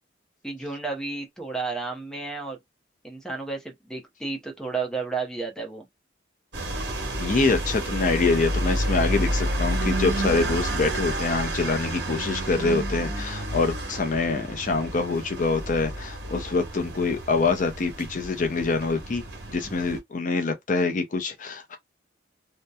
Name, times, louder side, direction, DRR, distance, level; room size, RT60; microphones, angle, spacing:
voice 1, 0.4-2.6 3.0-5.8, right 4 dB, 5° left, 0.6 m, -32 dB
sound 1, 6.5-20.0, right 1 dB, 75° right, 1.1 m, -30 dB
voice 2, 7.2-21.8, left 3 dB, 45° left, 0.5 m, -25 dB
2.7 x 2.1 x 2.2 m
head